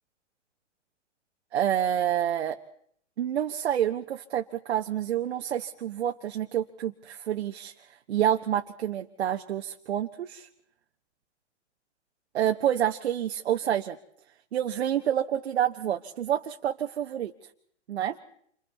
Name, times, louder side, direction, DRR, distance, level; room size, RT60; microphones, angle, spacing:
voice 1, 1.5-2.6 3.2-7.7 8.1-10.5 12.3-14.0 14.5-17.3 17.9-18.2, right 10 dB, 65° right, 5 dB, 1.1 m, -28 dB
28.5 x 26.0 x 4.1 m, 0.65 s
hypercardioid pair, 130°, 36 cm